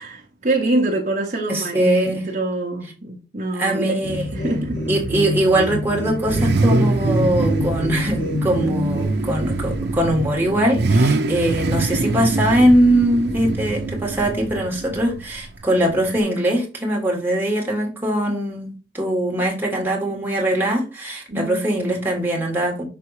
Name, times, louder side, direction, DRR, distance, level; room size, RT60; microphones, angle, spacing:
voice 1, 0.0-4.0 4.3-4.8 21.3-21.6, right 2 dB, 40° right, 0.9 m, -25 dB
voice 2, 1.5-2.3 3.5-4.2 4.9-22.8, right 1 dB, 10° right, 1.6 m, -21 dB
sound 1, 4.0-9.1, equal, 60° left, 2.0 m, -26 dB
Car / Idling / Accelerating revving vroom, 4.1-16.2, right 2 dB, 65° right, 0.6 m, -24 dB
6.0 x 3.4 x 4.8 m
head